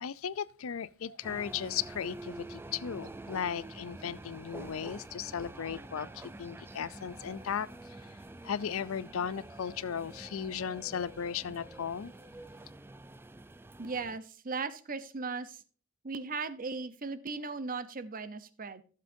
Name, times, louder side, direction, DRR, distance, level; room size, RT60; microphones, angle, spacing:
voice 1, 0.0-8.1 8.4-12.1, left 7 dB, 70° left, 0.5 m, -36 dB
sound 1, 1.2-14.2, right 2 dB, 10° right, 0.4 m, -47 dB
voice 2, 13.8-15.6 16.0-18.8, right 4 dB, 40° right, 0.8 m, -37 dB
15.5 x 7.5 x 2.7 m
head